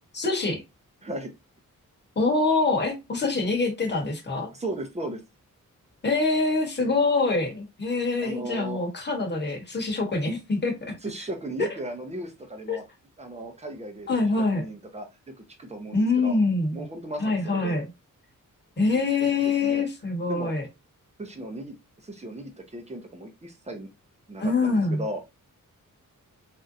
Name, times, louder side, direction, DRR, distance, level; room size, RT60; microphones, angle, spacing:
voice 1, 0.1-0.6 2.2-4.5 6.0-11.0 12.7-12.8 14.1-14.6 15.9-16.8 17.2-17.8 18.8-20.6 24.4-25.0, left 3 dB, 35° left, 1.2 m, -25 dB
voice 2, 1.0-1.3 4.5-5.2 8.2-8.8 11.0-12.8 13.2-15.1 15.4-16.4 16.7-17.8 19.2-19.8 20.3-20.5 21.2-23.9 24.3-25.2, right 1 dB, 20° right, 0.8 m, -36 dB
3.7 x 2.7 x 2.6 m
wide cardioid pair, 150°, 32 cm